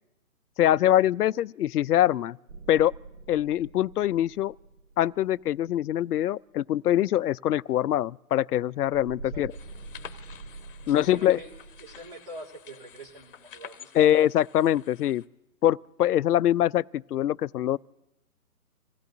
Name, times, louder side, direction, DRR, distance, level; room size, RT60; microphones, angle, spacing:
voice 1, 0.6-2.4 2.7-2.9 3.3-4.5 5.0-9.5 10.9-11.4 13.9-15.2 15.6-17.8, left 12 dB, 80° left, 0.5 m, -23 dB
sound 1, 2.5-6.0 8.8-12.1, right 3 dB, 55° right, 0.7 m, -45 dB
sound 2, 9.5-15.3, left 9 dB, 35° left, 1.0 m, -49 dB
voice 2, 10.8-11.5 11.8-14.1, right 1 dB, 35° right, 2.5 m, -44 dB
27.0 x 16.0 x 2.7 m
hypercardioid pair, 155°, 45 cm